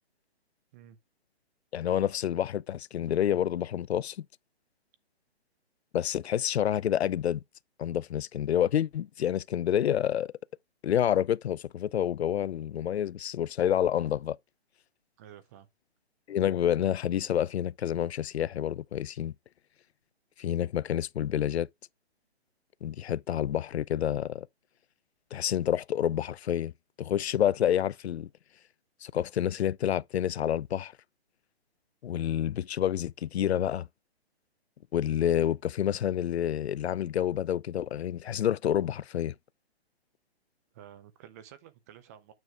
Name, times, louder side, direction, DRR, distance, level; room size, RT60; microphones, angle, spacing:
voice 1, 1.7-4.3 5.9-7.4 7.8-10.3 10.8-14.4 16.3-19.3 20.4-21.7 22.8-24.5 25.3-26.7 27.0-28.3 29.0-30.9 32.0-33.9 34.9-39.3, left 10 dB, 75° left, 0.5 m, -28 dB
voice 2, 15.2-15.7 40.7-42.3, right 10 dB, 15° right, 0.5 m, -51 dB
9.3 x 6.6 x 2.3 m
hypercardioid pair, 145°, 32 cm